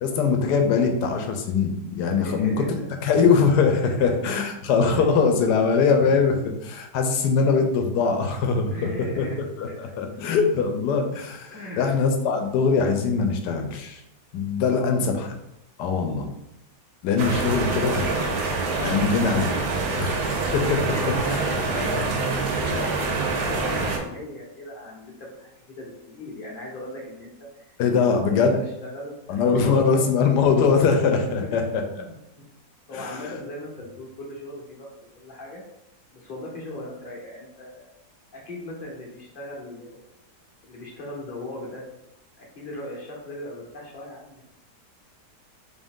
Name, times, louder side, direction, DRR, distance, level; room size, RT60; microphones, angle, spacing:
voice 1, 0.0-2.7 3.0-8.9 9.2-9.3 9.6-14.0 14.3-15.3 15.8-16.3 17.0-18.3 18.8-19.7 19.9-20.7 21.3-21.4 27.8-28.6 29.3-31.8 32.9-33.2, left 5 dB, 80° left, 5 dB, 1.2 m, -22 dB
voice 2, 2.1-2.9 3.8-4.2 4.9-5.1 6.0-6.2 8.7-9.8 11.5-12.0 14.6-15.0 20.9-27.7 27.9-30.0 31.2-31.7 31.9-32.5 32.9-34.9 35.2-35.6 36.1-37.9 38.3-40.1 40.6-41.8 42.4-44.4, left 1 dB, 45° left, -3 dB, 0.8 m, -38 dB
Rain A Little Thunder From Window, 17.2-24.0, right 3 dB, 65° right, 1.0 m, -26 dB
3.7 x 2.6 x 3.6 m, 0.86 s
omnidirectional pair, 1.8 m